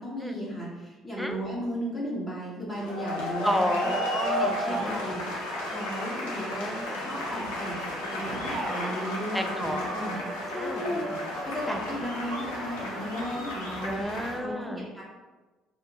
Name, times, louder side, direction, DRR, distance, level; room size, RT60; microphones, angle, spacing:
voice 1, 0.0-3.9 4.4-5.3 5.6-6.6 6.9-7.8 8.0-10.2 10.5-11.0 11.4-14.0 14.4-15.0, equal, 15° left, -6 dB, 0.8 m, -35 dB
sound 1, 2.7-14.4, left 1 dB, 75° left, 0.5 m, -33 dB
voice 2, 3.4-5.2 6.5-7.1 9.3-9.9 10.5-11.2 11.7-11.8 13.8-14.9, equal, ahead, 5 dB, 0.3 m, -32 dB
sound 2, 7.2-14.4, right 1 dB, 60° right, 0.7 m, -40 dB
2.8 x 2.1 x 2.9 m, 1.2 s
figure-of-eight pair, 50°, 0 cm